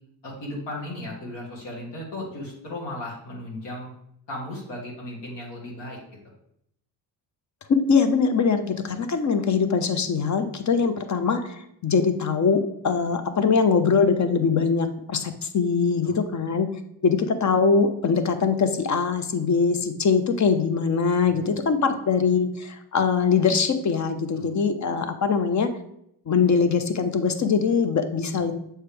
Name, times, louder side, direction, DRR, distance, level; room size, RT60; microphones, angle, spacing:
voice 1, 0.2-3.9 4.3-6.0 16.0-16.2 21.2-21.4 24.3-24.5, left 1 dB, 70° left, -4 dB, 2.1 m, -36 dB
voice 2, 7.7-16.7 17.0-25.7 26.3-28.5, left 5 dB, 40° left, 9 dB, 0.8 m, -22 dB
6.7 x 4.5 x 3.4 m, 0.76 s
supercardioid pair, 75°, 44 cm